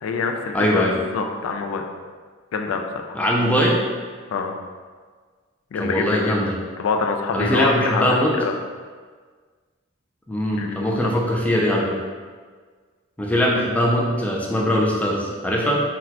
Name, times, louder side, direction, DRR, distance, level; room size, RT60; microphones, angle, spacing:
voice 1, 0.0-1.8 2.5-3.2 4.3-4.5 5.7-6.5 6.8-8.6 10.6-10.9, left 4 dB, 80° left, 4 dB, 0.3 m, -26 dB
voice 2, 0.5-1.0 3.1-3.8 5.8-6.6 7.3-8.3 10.3-12.0 13.2-15.8, equal, 5° left, -3 dB, 0.3 m, -21 dB
4.0 x 2.2 x 2.8 m, 1.6 s
head